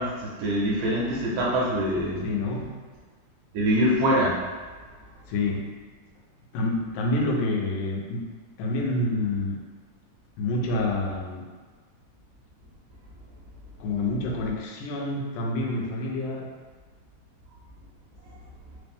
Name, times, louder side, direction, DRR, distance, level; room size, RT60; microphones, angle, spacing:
voice 1, 0.0-2.3 3.5-4.5, equal, 75° right, -5 dB, 2.0 m, -24 dB
voice 2, 2.2-2.9 5.3-5.7 6.5-8.3 8.6-9.6 10.4-11.4 13.8-16.5, left 2 dB, 85° left, -1 dB, 2.1 m, -28 dB
5.0 x 2.1 x 3.4 m, 1.4 s
omnidirectional pair, 3.7 m